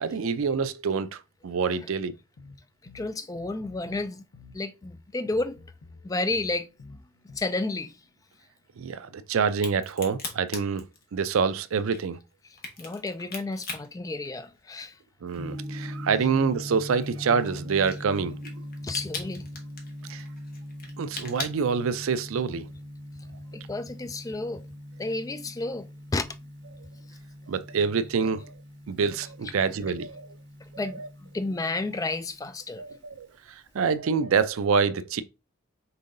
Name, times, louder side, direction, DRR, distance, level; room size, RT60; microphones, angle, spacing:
voice 1, 0.0-2.1 8.8-10.8 11.1-12.2 15.2-18.5 20.1-20.2 21.0-22.7 27.5-28.5 28.9-30.3 30.7-31.1 32.8-35.2, right 5 dB, 75° right, 0.4 m, -26 dB
sound 1, 2.4-4.1 4.3-7.4, left 3 dB, 80° left, 0.7 m, -50 dB
voice 2, 2.9-4.2 4.5-5.6 6.0-6.7 7.4-7.9 12.8-14.9 16.1-16.3 18.8-19.5 23.5-24.6 25.0-25.9 26.1-26.3 29.4-29.8 30.8-32.9, left 2 dB, 15° left, 0.3 m, -31 dB
Crack, 9.5-15.0 15.3-22.3, left 3 dB, 45° left, 1.1 m, -40 dB
Gong, 15.3-33.9, equal, 50° right, 1.2 m, -41 dB
5.4 x 3.7 x 2.6 m
head